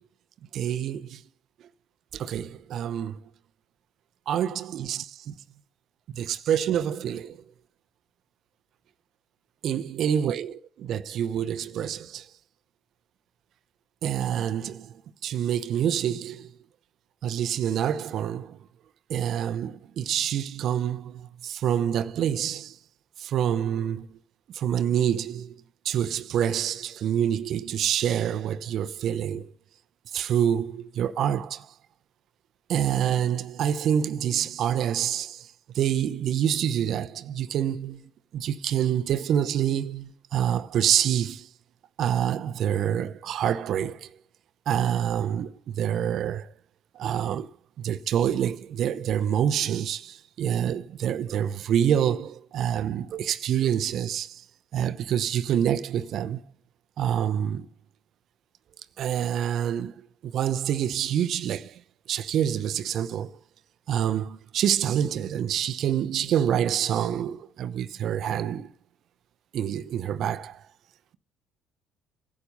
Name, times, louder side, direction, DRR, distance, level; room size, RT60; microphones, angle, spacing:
voice 1, 0.5-1.2 2.1-3.2 4.3-5.4 6.1-7.4 9.6-12.3 14.0-14.9 15.2-16.5 17.2-18.6 19.1-22.8 23.2-24.1 24.5-25.5 25.8-29.5 30.1-31.7 32.7-35.5 35.7-41.5 42.0-44.1 44.7-46.5 46.9-47.5 47.8-54.4 54.7-56.4 57.0-57.7 59.0-59.9 60.2-61.8 62.1-63.3 63.9-68.7 69.5-70.6, right 9 dB, 65° right, 0.8 m, -27 dB
11.5 x 8.5 x 5.4 m
supercardioid pair, 70°, 0 cm